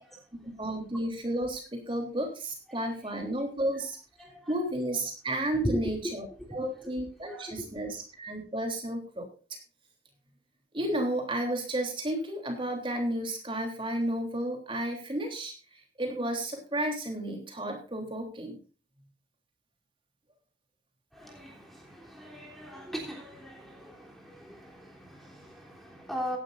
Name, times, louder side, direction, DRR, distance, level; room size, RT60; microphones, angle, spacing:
voice 1, 0.6-4.0 4.5-9.2 10.7-15.5 16.0-18.6, right 1 dB, 30° right, 3.4 m, -32 dB
voice 2, 4.2-4.5 5.6-6.1 6.4-6.5 7.3-7.5 21.1-26.4, equal, ahead, 3.4 m, -38 dB
16.5 x 11.5 x 2.6 m
head